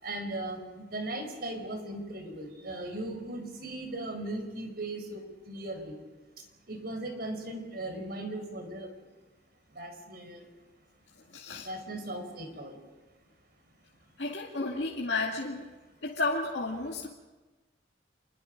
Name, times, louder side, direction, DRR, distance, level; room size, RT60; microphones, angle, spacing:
voice 1, 0.0-6.0 6.7-8.9 9.7-10.4 11.6-12.8, right 1 dB, 60° right, 5 dB, 5.1 m, -38 dB
voice 2, 11.3-11.7 14.2-15.6 16.0-17.1, left 3 dB, 75° left, -3 dB, 2.3 m, -32 dB
27.5 x 22.0 x 5.3 m, 1.2 s
head